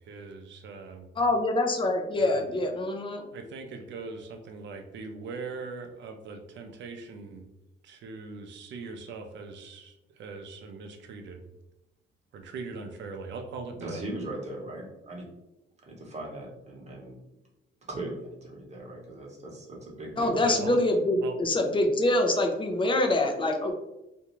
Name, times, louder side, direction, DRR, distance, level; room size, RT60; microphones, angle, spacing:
voice 1, 0.1-1.1 2.2-2.4 3.3-7.4 7.8-9.9 10.2-11.5 12.3-14.0 20.4-20.8 21.2-21.4, right 4 dB, 65° right, 4 dB, 0.5 m, -40 dB
voice 2, 1.2-3.2 20.2-23.7, left 2 dB, 25° left, 4 dB, 0.5 m, -25 dB
voice 3, 13.8-15.3 15.8-17.1 17.9-20.4, right 1 dB, 35° right, -2 dB, 0.9 m, -39 dB
2.5 x 2.2 x 3.0 m, 0.92 s
cardioid pair, 90°, 20 cm